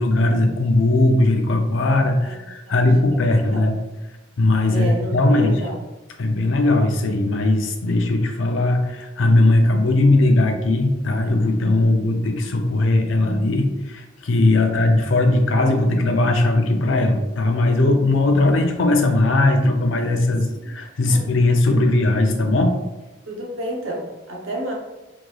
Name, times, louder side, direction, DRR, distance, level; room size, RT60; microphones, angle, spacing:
voice 1, 0.0-3.8 4.4-5.6 6.2-22.8, left 2 dB, 65° left, 3 dB, 0.5 m, -19 dB
voice 2, 3.2-3.6 4.7-5.8 20.5-20.7 21.1-21.3 23.3-24.7, right 1 dB, 75° right, -2 dB, 0.8 m, -30 dB
3.6 x 3.1 x 2.3 m, 1.0 s
head